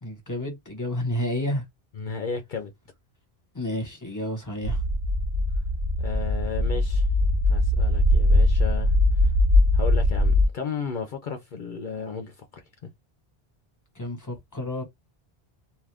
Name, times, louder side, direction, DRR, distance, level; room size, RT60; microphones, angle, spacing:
voice 1, 0.0-1.6 3.5-4.8 13.9-14.8, left 1 dB, 20° left, 1.2 m, -30 dB
voice 2, 2.0-2.7 6.0-7.1 7.5-8.9 9.2-9.3 9.7-12.6, left 5 dB, 55° left, 0.7 m, -34 dB
sound 1, 4.6-10.5, left 1 dB, 60° right, 0.9 m, -21 dB
2.6 x 2.4 x 3.3 m
omnidirectional pair, 1.1 m